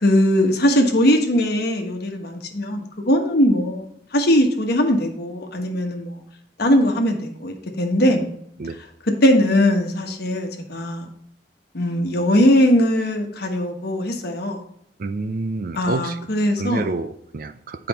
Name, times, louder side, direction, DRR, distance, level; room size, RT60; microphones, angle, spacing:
voice 1, 0.0-6.1 6.6-8.3 9.0-11.1 11.7-14.6 15.7-17.0, equal, 60° left, 3 dB, 1.3 m, -20 dB
voice 2, 15.0-16.2 16.6-17.9, right 3 dB, 50° right, 10 dB, 0.4 m, -28 dB
7.7 x 5.0 x 4.2 m, 0.71 s
head